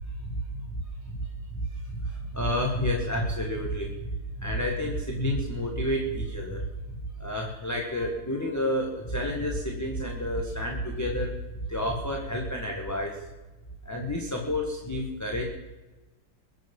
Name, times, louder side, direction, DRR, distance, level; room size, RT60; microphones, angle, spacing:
voice 1, 0.0-4.1 4.4-11.4 11.7-13.2 13.8-15.4, equal, 10° left, -1 dB, 1.6 m, -30 dB
22.0 x 8.2 x 5.6 m, 1.1 s
omnidirectional pair, 2.2 m